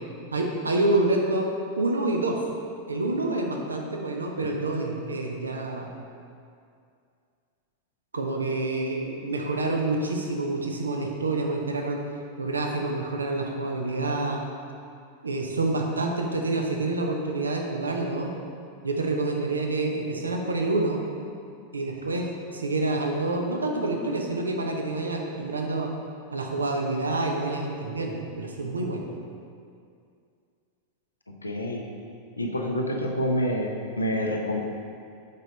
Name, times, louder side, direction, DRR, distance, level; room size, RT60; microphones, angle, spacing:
voice 1, 0.3-1.5 1.8-2.4 2.9-5.9 8.1-12.0 12.4-14.4 15.2-18.3 18.8-21.0 21.7-25.9 26.3-29.1, right 2 dB, 75° right, 1 dB, 0.7 m, -27 dB
voice 2, 31.4-31.8 32.4-34.6, equal, 80° left, 1 dB, 0.7 m, -27 dB
6.4 x 5.1 x 4.0 m, 2.3 s
figure-of-eight pair, 90°, 0 cm